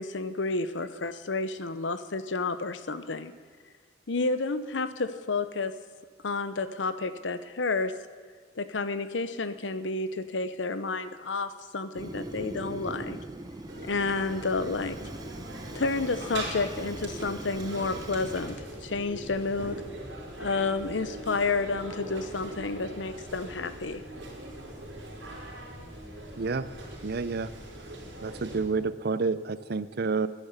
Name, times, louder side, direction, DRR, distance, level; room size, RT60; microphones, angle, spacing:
voice 1, 0.0-3.3 4.1-5.7 6.2-7.9 8.6-13.2 13.8-15.0 15.7-19.8 20.4-24.0, left 3 dB, 90° left, 13 dB, 0.8 m, -30 dB
Fire, 11.9-18.6, right 1 dB, 20° right, 0.8 m, -41 dB
sound 1, 13.7-28.6, right 1 dB, 85° right, 4.1 m, -41 dB
voice 2, 26.4-26.7 27.0-27.5 28.2-30.3, right 4 dB, 55° right, 15 dB, 0.6 m, -29 dB
11.5 x 11.0 x 8.2 m, 1.5 s
head